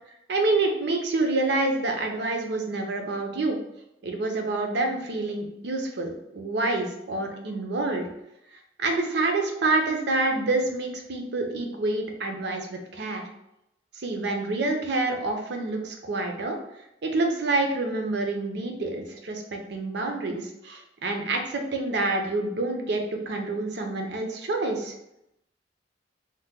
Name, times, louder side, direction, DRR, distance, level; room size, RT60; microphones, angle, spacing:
voice 1, 0.3-3.6 4.0-8.1 8.8-13.3 14.0-16.6 17.0-24.9, right 2 dB, 65° right, 3 dB, 0.6 m, -27 dB
2.9 x 2.1 x 3.5 m, 0.83 s
head